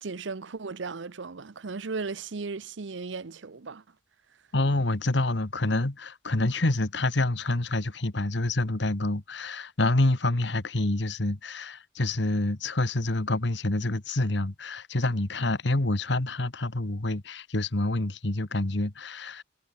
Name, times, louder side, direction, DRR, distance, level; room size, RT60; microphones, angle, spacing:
voice 1, 0.0-3.9, right 4 dB, 70° right, 0.7 m, -36 dB
voice 2, 4.5-19.4, left 2 dB, 60° left, 1.5 m, -27 dB
head